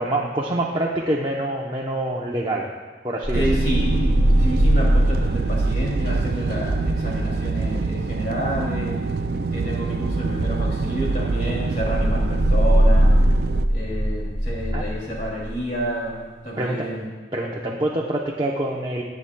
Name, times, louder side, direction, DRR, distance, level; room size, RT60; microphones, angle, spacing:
voice 1, 0.0-2.7 3.0-3.6 14.7-14.8 16.6-16.9 17.3-19.0, right 1 dB, 25° right, -2 dB, 0.7 m, -25 dB
sound 1, 3.2-15.9, equal, 80° left, 1.8 m, -23 dB
voice 2, 3.3-9.0 9.5-13.2 13.7-16.2 16.4-17.1, right 1 dB, 50° left, -4 dB, 2.6 m, -29 dB
sound 2, 3.3-13.7, right 4 dB, 60° right, 0.4 m, -26 dB
18.0 x 8.4 x 2.2 m, 1.3 s
head